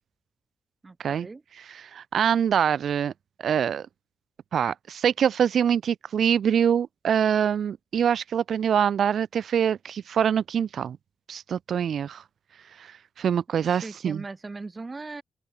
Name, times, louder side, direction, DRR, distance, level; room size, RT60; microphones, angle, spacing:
voice 1, 0.8-1.4 13.6-15.2, right 3 dB, 20° right, 7.8 m, -39 dB
voice 2, 1.6-3.1 3.4-3.9 4.5-11.0 11.3-12.2 12.8-14.2, right 8 dB, 65° right, 6.7 m, -24 dB
open air
wide cardioid pair, 170°, 0 cm